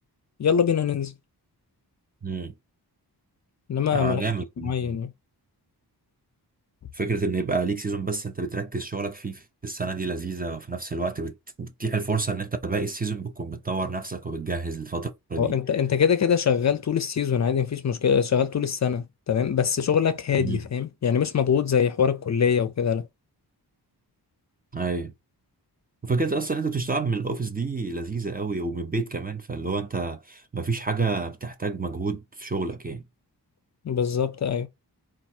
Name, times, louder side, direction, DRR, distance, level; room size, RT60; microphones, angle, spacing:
voice 1, 0.4-1.1 3.7-4.2 4.6-5.1 15.4-23.1 33.8-34.7, left 7 dB, 45° left, 0.4 m, -23 dB
voice 2, 2.2-2.5 3.9-4.9 6.9-15.5 20.4-20.6 24.7-25.1 26.0-33.0, right 4 dB, 25° right, 0.4 m, -29 dB
4.3 x 2.4 x 4.2 m
wide cardioid pair, 160°, 40 cm